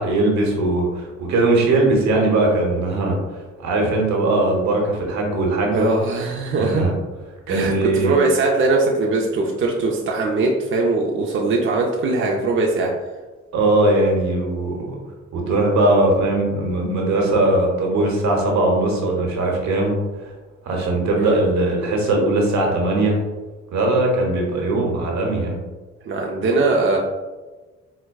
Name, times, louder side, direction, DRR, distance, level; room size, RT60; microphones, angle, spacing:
voice 1, 0.0-3.2 3.6-5.9 6.6-6.9 7.5-8.2 13.5-15.0 15.3-20.3 20.6-23.2 23.7-25.6, right 2 dB, 65° right, 0 dB, 0.9 m, -20 dB
voice 2, 5.7-6.8 7.5-12.9 21.2-21.4 26.1-27.0, right 3 dB, 40° right, -1 dB, 0.5 m, -21 dB
4.6 x 2.1 x 2.3 m, 1.3 s
cardioid pair, 90°, 30 cm